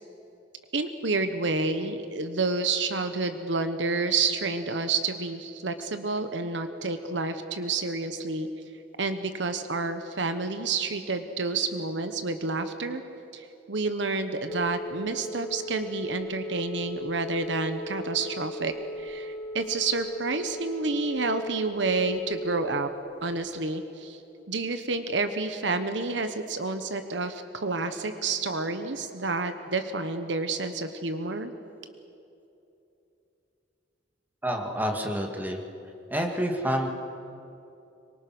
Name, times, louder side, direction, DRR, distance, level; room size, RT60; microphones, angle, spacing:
voice 1, 0.7-8.5 9.0-13.0 13.3-22.9 23.2-24.2 24.5-31.5, right 3 dB, 70° right, 9 dB, 1.2 m, -29 dB
Telephone, 14.5-22.8, left 1 dB, 15° left, 1.0 m, -38 dB
voice 2, 34.4-35.6 36.1-36.9, equal, 10° right, 2 dB, 2.2 m, -28 dB
25.5 x 24.0 x 6.2 m, 2.8 s
head